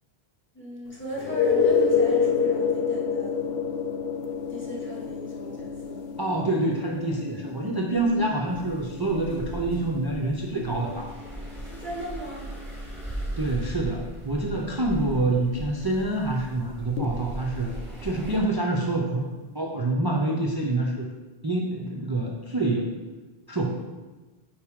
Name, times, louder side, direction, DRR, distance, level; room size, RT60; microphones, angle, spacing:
voice 1, 0.5-3.3 4.5-6.0 11.7-12.5, equal, 10° left, -5 dB, 2.0 m, -37 dB
sound 1, 1.1-12.7 17.0-17.1, left 6 dB, 75° left, 0.9 m, -28 dB
voice 2, 6.2-11.2 13.4-17.7 18.0-21.1 21.4-22.9 23.5-23.7, right 2 dB, 25° right, -1 dB, 0.6 m, -26 dB
sound 2, 8.5-18.4, right 1 dB, 10° right, 2.5 m, -38 dB
9.2 x 4.9 x 3.7 m, 1.2 s
omnidirectional pair, 1.1 m